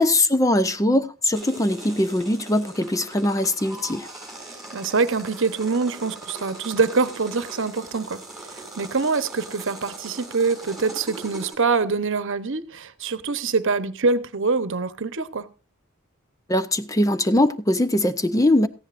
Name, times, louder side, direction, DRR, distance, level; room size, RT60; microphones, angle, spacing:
voice 1, 0.0-4.1 16.5-18.7, left 1 dB, 15° left, 0.5 m, -21 dB
sound 1, 1.3-11.6, right 2 dB, ahead, 6.1 m, -40 dB
voice 2, 4.5-8.2 8.5-15.5, right 4 dB, 60° right, 1.0 m, -24 dB
18.0 x 14.5 x 2.5 m
head